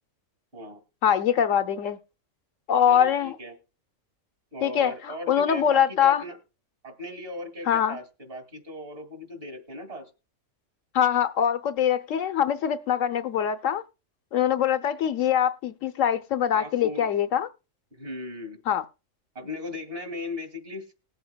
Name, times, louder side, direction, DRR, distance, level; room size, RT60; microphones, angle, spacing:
voice 1, 1.0-2.0 2.7-3.3 4.6-6.2 7.7-8.0 10.9-13.8 14.3-17.5 18.7-18.8, left 9 dB, 75° left, 1.0 m, -23 dB
voice 2, 2.9-3.5 4.5-6.4 6.8-10.1 16.5-17.1 17.9-18.6 19.3-20.9, left 1 dB, 45° right, 2.4 m, -38 dB
20.0 x 7.8 x 2.2 m
omnidirectional pair, 1.4 m